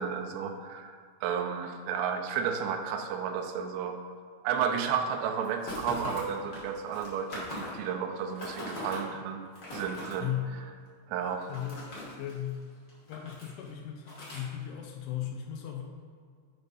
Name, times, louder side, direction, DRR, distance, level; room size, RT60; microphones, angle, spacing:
voice 1, 0.0-4.0 4.4-9.4 9.7-10.3 11.1-11.5, right 7 dB, 80° right, 4 dB, 2.7 m, -32 dB
sound 1, 5.4-7.9 8.2-9.0 9.4-10.1 11.2-12.5 12.9-13.7 14.0-14.4, left 2 dB, 65° left, 1.1 m, -40 dB
voice 2, 10.2-10.5 11.5-11.8 12.2-12.6 13.1-15.8, left 11 dB, 90° left, 1 dB, 3.2 m, -36 dB
8.3 x 3.9 x 5.2 m, 2.1 s
omnidirectional pair, 5.4 m